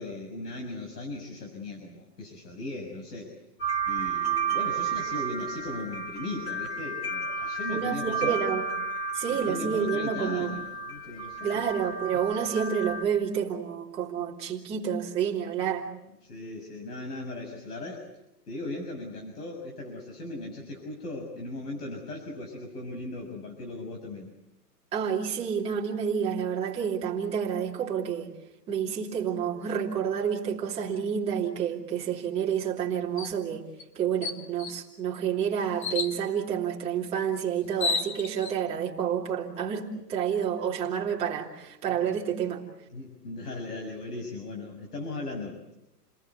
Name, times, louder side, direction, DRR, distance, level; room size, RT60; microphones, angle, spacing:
voice 1, 0.0-3.3 3.8-8.4 9.3-11.6 16.2-18.1 18.5-24.3 42.9-45.7, left 2 dB, 70° left, 2 dB, 6.5 m, -38 dB
sound 1, 3.6-13.0, right 5 dB, 10° left, 2.4 m, -32 dB
voice 2, 7.7-8.6 9.1-10.6 11.4-15.9 24.9-28.3 28.7-33.7 33.9-42.6, right 8 dB, 10° right, -3 dB, 2.8 m, -29 dB
sound 2, 33.2-33.4 33.8-33.9 34.2-34.8 35.8-36.2 37.3-37.4 37.6-38.5, left 4 dB, 30° left, 1.3 m, -31 dB
30.0 x 19.5 x 8.2 m, 0.90 s
hypercardioid pair, 170°, 49 cm